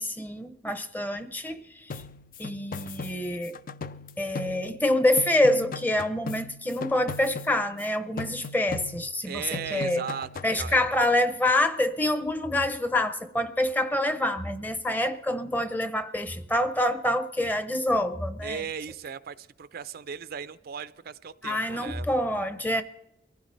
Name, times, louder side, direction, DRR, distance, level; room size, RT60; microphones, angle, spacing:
voice 1, 0.0-1.9 2.4-3.5 4.2-10.0 10.4-18.6 21.4-22.8, left 1 dB, 10° left, 0.7 m, -26 dB
Percussion Drum Loop, 1.9-4.9 5.2-7.9 8.2-9.2 9.5-10.6, left 4 dB, 50° left, 0.5 m, -39 dB
voice 2, 9.3-10.9 18.4-22.1, right 7 dB, 55° right, 0.4 m, -37 dB
24.0 x 15.5 x 3.3 m
head